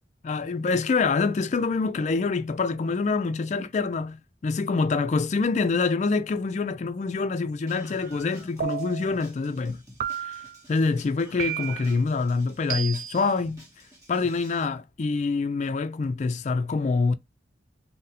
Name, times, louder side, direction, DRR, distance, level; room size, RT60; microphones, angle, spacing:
voice 1, 0.2-9.8 10.2-10.3 10.7-13.6 14.1-17.1, left 4 dB, 35° left, 0.3 m, -26 dB
Screaming, 7.7-14.6, equal, 15° right, 0.9 m, -49 dB
sound 1, 8.6-9.2 10.0-10.6 11.4-12.0 12.7-13.3, right 9 dB, 45° right, 0.3 m, -32 dB
4.0 x 2.0 x 2.7 m
head